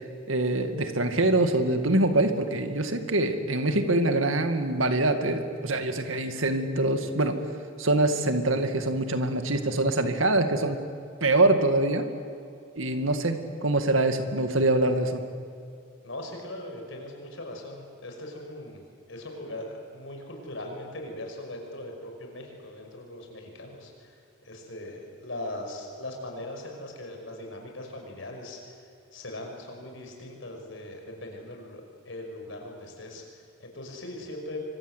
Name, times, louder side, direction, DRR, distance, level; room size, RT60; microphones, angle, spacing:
voice 1, 0.3-7.4 7.8-10.8 11.2-12.1 12.8-15.2, right 2 dB, 75° right, 7 dB, 2.2 m, -24 dB
voice 2, 16.0-18.8 19.1-28.7 29.1-34.6, left 1 dB, 70° left, 2 dB, 5.8 m, -40 dB
27.5 x 24.5 x 8.2 m, 2.5 s
head